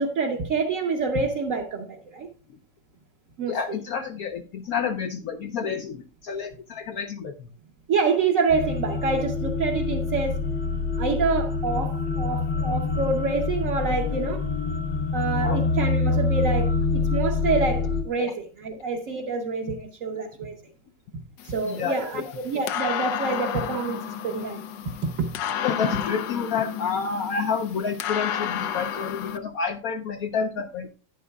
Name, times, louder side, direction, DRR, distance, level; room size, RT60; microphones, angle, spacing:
voice 1, 0.0-2.3 3.4-3.6 7.9-10.4 11.0-14.4 15.1-20.6 21.4-24.6 25.0-25.3, right 4 dB, 55° right, 1.1 m, -27 dB
voice 2, 3.5-7.5 15.4-15.6 21.6-22.1 25.6-30.9, left 6 dB, 70° left, 0.9 m, -29 dB
sound 1, 8.5-18.0, left 4 dB, 45° left, 0.9 m, -26 dB
sound 2, 21.4-29.4, left 9 dB, 85° left, 1.4 m, -32 dB
11.0 x 9.2 x 2.3 m
omnidirectional pair, 2.0 m